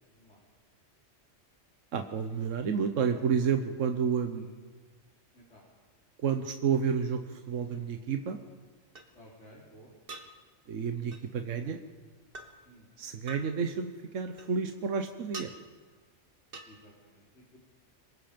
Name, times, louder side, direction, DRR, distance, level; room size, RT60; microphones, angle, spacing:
voice 1, 0.1-0.4 4.4-4.5 5.3-5.6 9.1-9.9 12.6-12.9 16.7-17.6, equal, 70° left, -6 dB, 4.3 m, -55 dB
voice 2, 1.9-4.5 6.2-8.4 10.7-11.8 13.0-15.5, right 6 dB, 85° right, 6 dB, 1.4 m, -30 dB
sound 1, 7.7-7.8 9.0-9.1 10.1-10.3 11.1-11.3 12.3-12.5 13.3-13.5 14.4-14.9 15.3-15.5 16.5-16.7, right 3 dB, 50° right, 2.0 m, -43 dB
26.0 x 23.5 x 5.2 m, 1.4 s
omnidirectional pair, 1.3 m